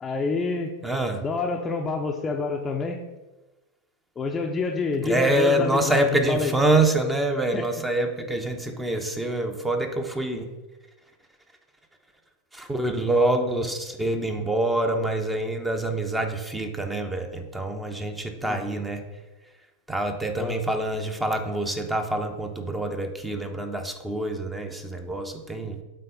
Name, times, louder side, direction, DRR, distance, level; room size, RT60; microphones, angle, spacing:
voice 1, 0.0-0.7 1.2-3.0 4.2-6.5 7.5-7.6 18.4-18.6 20.4-20.5, left 3 dB, 20° left, 3 dB, 0.7 m, -27 dB
voice 2, 0.8-1.2 5.0-10.6 12.5-19.0 19.9-25.8, right 1 dB, 10° right, 6 dB, 0.9 m, -26 dB
7.8 x 4.2 x 5.4 m, 1.1 s
figure-of-eight pair, 90°, 0 cm